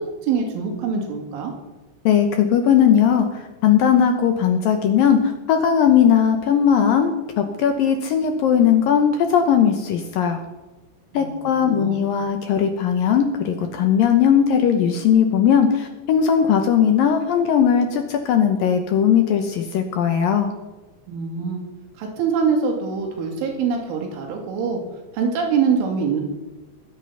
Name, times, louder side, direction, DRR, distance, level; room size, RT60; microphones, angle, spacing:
voice 1, 0.0-1.5 11.1-11.3 11.6-12.0 21.1-21.6 22.0-24.8 25.1-26.2, right 5 dB, 85° right, 2 dB, 4.8 m, -24 dB
voice 2, 2.1-10.4 11.1-20.5, left 8 dB, 75° left, 6 dB, 2.1 m, -18 dB
21.0 x 8.5 x 5.6 m, 1.1 s
omnidirectional pair, 5.4 m